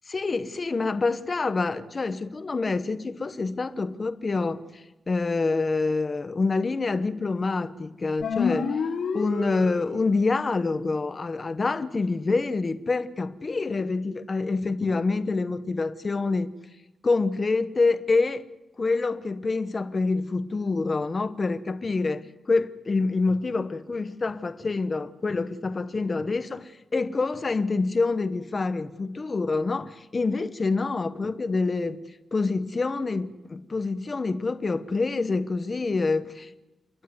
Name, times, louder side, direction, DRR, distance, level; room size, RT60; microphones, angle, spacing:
voice 1, 0.1-8.8 9.1-16.5 17.0-18.4 18.8-32.0 32.3-36.5, left 3 dB, 30° left, 1.0 m, -26 dB
sound 1, 8.2-10.2, left 5 dB, 80° left, 3.9 m, -28 dB
29.5 x 12.0 x 9.4 m
wide cardioid pair, 145°, 0 cm